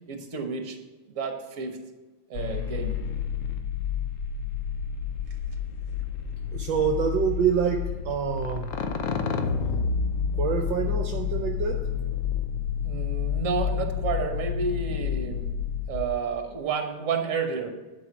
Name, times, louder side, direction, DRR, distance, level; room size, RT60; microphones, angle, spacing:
voice 1, 0.1-0.8 1.1-1.8 2.3-3.0 12.8-15.5 15.9-17.7, right 5 dB, 45° right, 4 dB, 1.4 m, -30 dB
sound 1, 2.3-16.1, left 7 dB, 90° left, 0.7 m, -29 dB
voice 2, 6.5-8.7 10.3-11.8, right 7 dB, 70° right, 4 dB, 1.3 m, -26 dB
10.5 x 5.3 x 6.0 m, 1.2 s
omnidirectional pair, 2.3 m